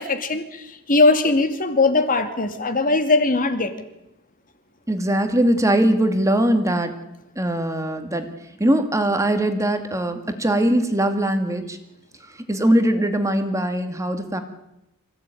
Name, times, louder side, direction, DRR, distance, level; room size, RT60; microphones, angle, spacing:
voice 1, 0.0-3.7, left 3 dB, 40° left, 8 dB, 2.4 m, -20 dB
voice 2, 4.9-6.9 7.4-8.3 8.6-11.8 12.5-14.4, right 1 dB, 15° right, 6 dB, 2.0 m, -21 dB
26.0 x 16.0 x 9.2 m, 0.89 s
head